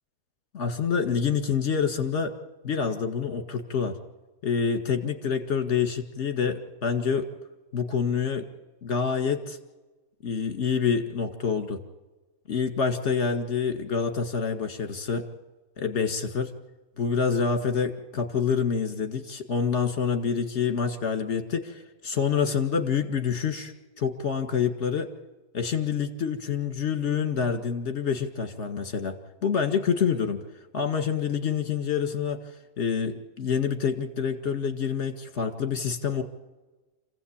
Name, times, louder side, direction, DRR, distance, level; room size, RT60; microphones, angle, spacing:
voice 1, 0.5-2.3 2.6-4.0 4.4-7.3 7.7-8.5 8.8-9.6 10.2-11.8 12.5-15.3 15.8-16.6 17.0-25.1 25.5-30.4 30.7-32.4 32.8-36.2, left 6 dB, 50° left, 7 dB, 2.1 m, -27 dB
26.5 x 15.5 x 8.7 m, 1.2 s
omnidirectional pair, 1.6 m